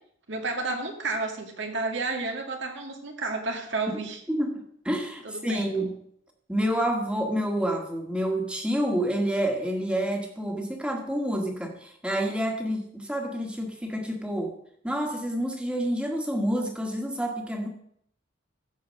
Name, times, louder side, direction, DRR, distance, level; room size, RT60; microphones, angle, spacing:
voice 1, 0.3-4.2 5.2-5.9, right 3 dB, 65° right, 3 dB, 2.2 m, -31 dB
voice 2, 4.3-5.9 6.5-14.5 14.8-17.7, equal, 5° right, 2 dB, 1.7 m, -28 dB
14.5 x 5.1 x 6.4 m, 0.69 s
head